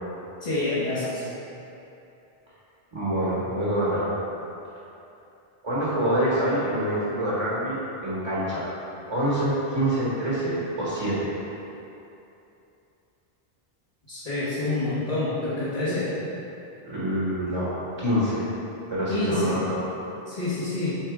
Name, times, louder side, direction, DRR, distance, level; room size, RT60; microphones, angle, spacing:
voice 1, 0.4-1.2 14.1-16.1 19.1-19.6 20.3-21.0, left 2 dB, 40° left, -12 dB, 1.4 m, -27 dB
voice 2, 2.9-4.1 5.6-8.7 9.1-11.3 16.8-17.7 18.0-18.5 18.9-19.8, right 1 dB, 35° right, -9 dB, 1.5 m, -26 dB
7.9 x 4.4 x 3.6 m, 2.8 s
omnidirectional pair, 1.1 m